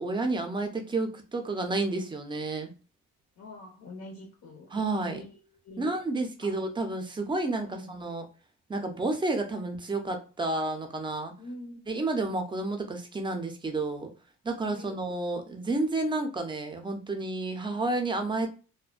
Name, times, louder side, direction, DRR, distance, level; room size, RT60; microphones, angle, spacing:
voice 1, 0.0-2.7 4.7-5.2 5.8-8.2 8.7-11.3 11.9-14.1 14.4-18.5, right 2 dB, 15° right, 5 dB, 0.4 m, -30 dB
voice 2, 3.4-5.4 5.6-5.9 6.4-6.5 7.6-7.9 11.4-11.8 14.7-15.0, left 1 dB, 55° left, 2 dB, 0.5 m, -45 dB
2.5 x 2.1 x 2.3 m, 0.35 s
cardioid pair, 110°, 32 cm